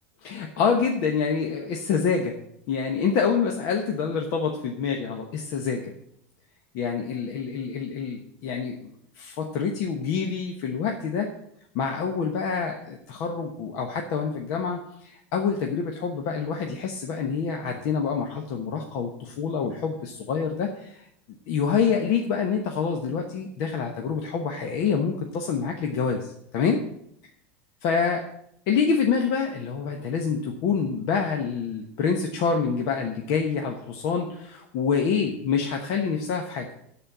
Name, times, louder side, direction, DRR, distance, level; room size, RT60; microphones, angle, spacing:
voice 1, 0.2-2.4 2.7-5.9 6.7-11.3 11.7-21.0 21.5-26.8 27.8-28.2 28.7-36.7, left 6 dB, 50° left, 2 dB, 1.1 m, -26 dB
12.0 x 4.4 x 7.5 m, 0.72 s
supercardioid pair, 160°, 7 cm